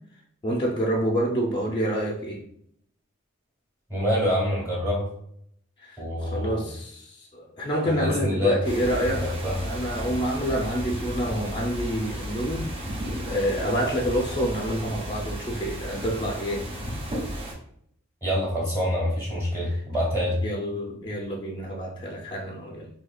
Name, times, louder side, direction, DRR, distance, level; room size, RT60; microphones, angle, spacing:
voice 1, 0.4-2.4 5.8-9.3 9.6-12.7 13.3-16.7 19.6-19.8 20.4-22.9, equal, 20° left, -1 dB, 0.4 m, -28 dB
voice 2, 3.9-5.1 6.0-6.7 8.0-8.6 9.0-9.5 18.2-20.4, equal, 10° right, -6 dB, 1.4 m, -26 dB
sound 1, 8.6-17.5, equal, 30° right, 1.2 m, -34 dB
4.5 x 2.7 x 2.3 m, 0.70 s
head